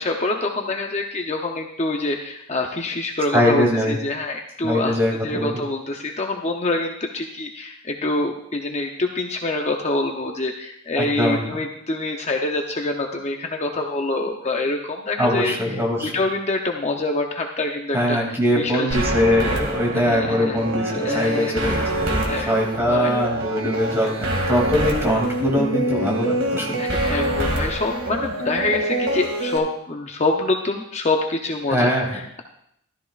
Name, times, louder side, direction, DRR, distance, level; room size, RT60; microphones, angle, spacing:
voice 1, 0.0-5.0 5.2-15.8 16.1-19.0 19.9-20.6 20.9-21.8 22.1-22.5 22.9-23.1 23.9-24.1 26.8-32.4, left 2 dB, 30° left, 2 dB, 0.7 m, -26 dB
voice 2, 3.3-4.0 4.6-5.6 11.0-11.4 15.2-16.1 17.9-26.8 31.7-32.1, equal, 10° right, -2 dB, 2.7 m, -22 dB
sound 1, 18.9-29.6, right 1 dB, 60° right, 2.3 m, -25 dB
14.0 x 13.5 x 2.5 m, 0.74 s
head